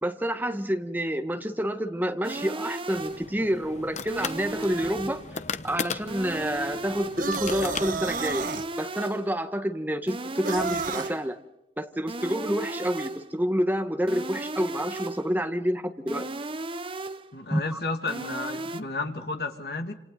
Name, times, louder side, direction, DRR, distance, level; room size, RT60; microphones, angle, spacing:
voice 1, 0.0-5.2 5.6-8.5 8.8-11.4 11.8-16.2 17.5-17.8, equal, 10° right, 7 dB, 1.6 m, -28 dB
sound 1, 2.2-3.3 4.1-5.3 6.1-7.3 8.1-9.3 10.1-11.3 12.1-13.3 14.1-15.3 16.1-17.3 18.1-18.8, right 2 dB, 30° right, 0.9 m, -36 dB
sound 2, 2.9-8.5, left 5 dB, 40° left, 1.0 m, -37 dB
sound 3, 7.2-8.7 10.4-11.1, right 4 dB, 50° right, 1.3 m, -31 dB
voice 2, 17.3-19.9, left 3 dB, 60° left, 5 dB, 2.4 m, -32 dB
28.0 x 27.5 x 4.0 m, 0.85 s
head